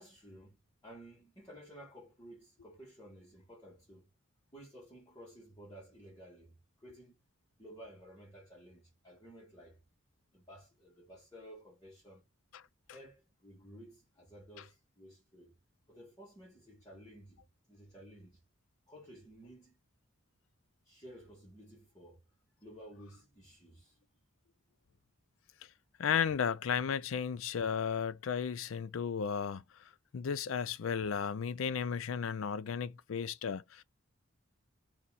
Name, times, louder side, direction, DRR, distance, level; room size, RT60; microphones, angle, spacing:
voice 1, 0.0-4.1 4.5-6.5 6.8-7.2 7.6-9.8 10.3-12.3 12.9-15.5 15.9-17.4 17.7-18.4 18.9-19.8 20.8-22.2 22.6-24.0, equal, 20° left, 1.8 m, -54 dB
voice 2, 26.0-29.6 30.1-33.8, left 7 dB, 75° left, 0.4 m, -34 dB
4.1 x 3.0 x 3.8 m
head